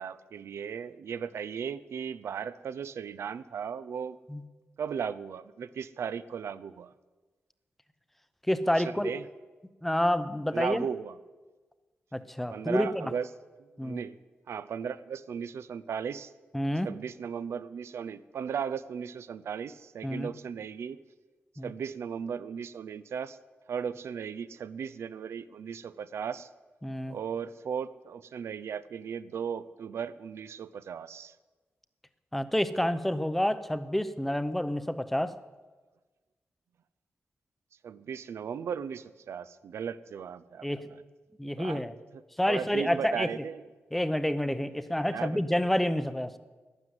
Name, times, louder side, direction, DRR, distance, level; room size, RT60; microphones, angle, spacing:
voice 1, 0.0-4.2 4.8-6.9 8.8-9.2 10.5-11.1 12.5-13.3 13.8-14.2 14.5-16.3 16.8-21.0 21.6-23.4 23.7-26.5 27.1-31.3 37.8-40.7 41.4-41.8 42.5-43.6 45.1-45.4, right 7 dB, 85° right, 16 dB, 0.6 m, -36 dB
voice 2, 8.5-9.1 9.8-10.9 12.1-13.1 13.8-14.0 16.5-16.9 20.0-20.3 21.6-21.7 26.8-27.2 32.3-35.3 40.6-40.9 41.4-41.9 42.4-43.3 43.9-46.4, left 1 dB, 5° left, 12 dB, 0.7 m, -28 dB
12.0 x 10.5 x 9.6 m, 1.3 s
wide cardioid pair, 165°, 4 cm